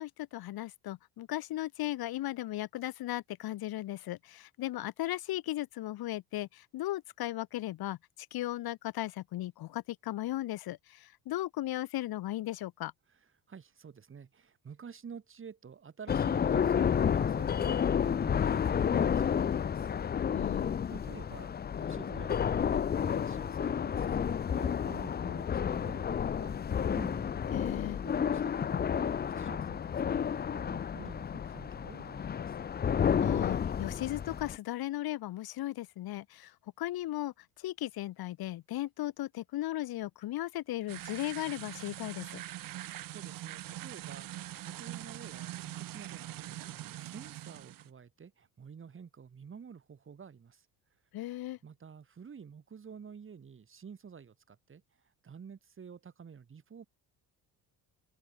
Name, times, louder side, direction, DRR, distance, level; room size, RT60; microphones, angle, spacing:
voice 1, 0.0-12.9 20.3-20.7 27.5-28.0 33.2-42.4 51.1-51.6, left 15 dB, 65° left, 2.3 m, -36 dB
voice 2, 13.5-19.9 20.6-27.0 28.0-32.6 42.8-50.7 51.6-54.8 55.2-56.8, right 6 dB, 30° right, 6.6 m, -50 dB
sound 1, 16.1-34.6, left 8 dB, 25° left, 0.6 m, -31 dB
sound 2, 27.0-30.9 31.2-31.3, right 1 dB, 5° right, 7.0 m, -50 dB
sound 3, 40.9-47.9, right 14 dB, 60° right, 1.3 m, -43 dB
open air
cardioid pair, 135°, 39 cm